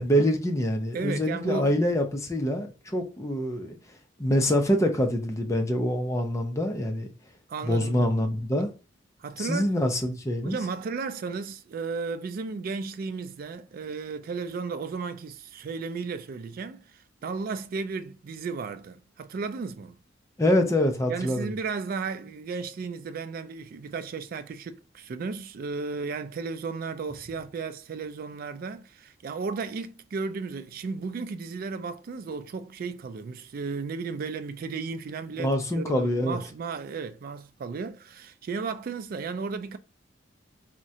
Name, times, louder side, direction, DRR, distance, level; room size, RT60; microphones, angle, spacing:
voice 1, 0.0-3.8 4.2-7.1 7.6-8.7 9.4-10.6 20.4-21.5 35.4-36.4, equal, 15° left, 0.5 m, -25 dB
voice 2, 0.9-1.8 7.5-8.1 9.2-9.9 10.4-20.0 21.1-39.8, right 4 dB, 50° right, 0.3 m, -34 dB
3.6 x 2.1 x 2.7 m
head